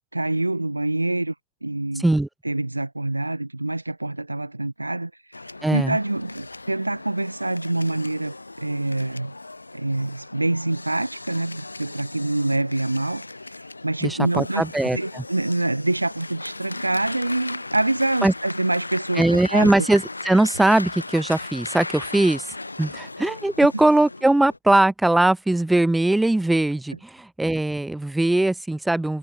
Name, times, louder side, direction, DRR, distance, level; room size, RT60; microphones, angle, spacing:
voice 1, 0.1-1.3 1.6-2.0 2.4-5.1 5.7-9.3 9.7-13.3 13.6-14.7 14.9-19.7, right 2 dB, 85° right, 0.7 m, -26 dB
voice 2, 2.0-2.3 5.6-6.0 14.0-15.2 18.2-18.3 19.2-22.5 22.8-29.2, right 2 dB, 5° right, 0.4 m, -20 dB
sound 1, 5.3-24.6, left 2 dB, 80° left, 1.0 m, -37 dB
figure-of-eight pair, 90°, 0 cm